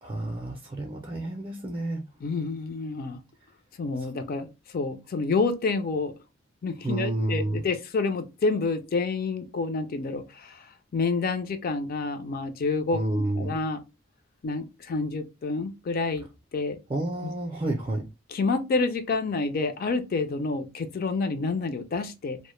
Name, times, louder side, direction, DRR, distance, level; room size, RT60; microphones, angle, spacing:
voice 1, 0.0-2.0 6.8-7.6 12.9-13.6 16.9-18.0, right 1 dB, 25° right, 0.4 m, -29 dB
voice 2, 2.2-3.2 3.8-6.1 6.6-10.6 10.9-13.0 13.4-13.8 14.4-16.2 16.5-16.8 17.2-17.3 18.3-22.4, left 3 dB, 50° left, 0.4 m, -28 dB
2.1 x 2.0 x 3.0 m
head